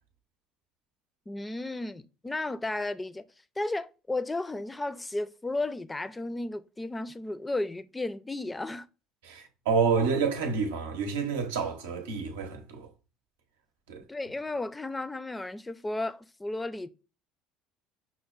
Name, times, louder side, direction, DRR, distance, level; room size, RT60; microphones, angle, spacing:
voice 1, 1.3-3.2 3.6-8.9 14.1-16.9, left 2 dB, 15° left, 0.4 m, -34 dB
voice 2, 9.2-12.9 13.9-14.0, right 5 dB, 80° right, 0.7 m, -28 dB
5.6 x 2.1 x 2.4 m
hypercardioid pair, 65°, 0 cm